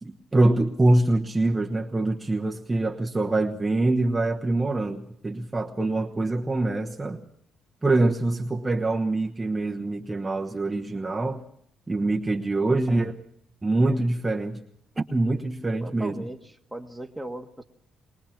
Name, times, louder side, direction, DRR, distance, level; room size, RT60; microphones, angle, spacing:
voice 1, 0.0-7.2 7.8-11.4 11.9-13.1 13.6-14.6 15.0-16.1, right 2 dB, 20° right, 1 dB, 1.2 m, -24 dB
voice 2, 12.6-13.1 15.8-17.6, right 1 dB, 5° right, 3 dB, 1.6 m, -38 dB
22.5 x 20.5 x 6.0 m, 0.70 s
cardioid pair, 90°, 0 cm